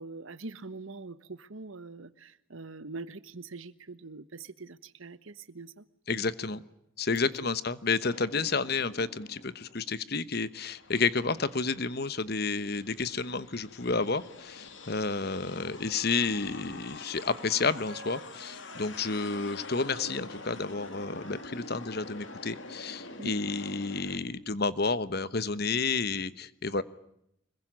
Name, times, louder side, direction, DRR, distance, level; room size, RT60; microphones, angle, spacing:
voice 1, 0.0-5.8 8.4-8.5 23.2-23.4, right 3 dB, 80° right, 15 dB, 1.3 m, -43 dB
voice 2, 6.1-6.6 7.0-26.8, left 4 dB, 50° left, 15 dB, 1.1 m, -31 dB
sound 1, 8.1-9.9 10.4-24.2, left 3 dB, 65° left, 2.8 m, -46 dB
Wind instrument woodwind instrument, 15.9-22.5, right 4 dB, 65° right, 4.0 m, -54 dB
25.5 x 22.0 x 8.9 m, 0.77 s
head